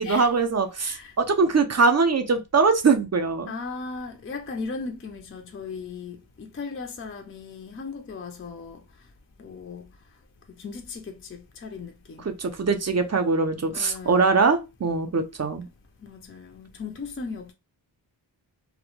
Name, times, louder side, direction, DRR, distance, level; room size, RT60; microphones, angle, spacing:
voice 1, 0.0-3.5 12.2-15.7, right 4 dB, 35° right, 0.5 m, -22 dB
voice 2, 0.8-1.1 3.5-8.8 9.4-9.9 10.5-12.3 13.7-14.3 16.0-17.5, left 4 dB, 30° left, 0.4 m, -37 dB
2.1 x 2.0 x 2.9 m
wide cardioid pair, 55°, 46 cm